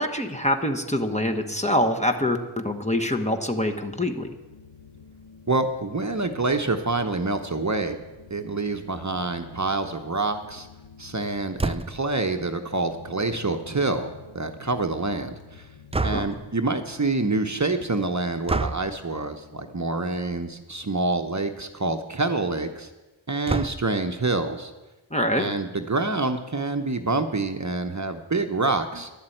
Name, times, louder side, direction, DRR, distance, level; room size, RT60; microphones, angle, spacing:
voice 1, 0.0-4.3 16.1-16.2 25.1-25.5, left 1 dB, 15° left, 3 dB, 1.1 m, -25 dB
sound 1, 3.6-19.8, left 6 dB, 65° left, 1.1 m, -49 dB
voice 2, 5.5-8.0 8.3-10.7 11.0-15.7 16.0-22.9 23.3-24.7 25.4-29.1, right 3 dB, 35° right, 6 dB, 0.9 m, -27 dB
sound 2, 11.6-12.1 15.9-16.5 18.5-18.9 20.1-20.4 20.8-20.9 21.1-21.2 23.5-24.1, right 3 dB, 15° right, 0.3 m, -28 dB
11.0 x 7.5 x 9.0 m, 1.1 s
wide cardioid pair, 50°, 48 cm